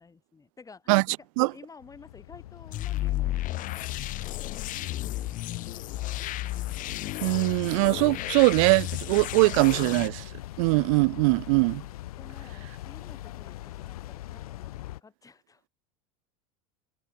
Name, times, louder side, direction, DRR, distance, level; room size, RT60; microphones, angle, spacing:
voice 1, 0.0-5.7 12.2-15.7, left 4 dB, 20° left, 2.2 m, -53 dB
sound 1, 1.8-15.0, left 15 dB, 80° left, 1.2 m, -41 dB
sound 2, 2.7-10.1, left 15 dB, 45° left, 1.5 m, -33 dB
voice 2, 7.2-10.2 10.6-11.8, right 28 dB, 65° right, 0.4 m, -22 dB
hypercardioid pair, 95°, 19 cm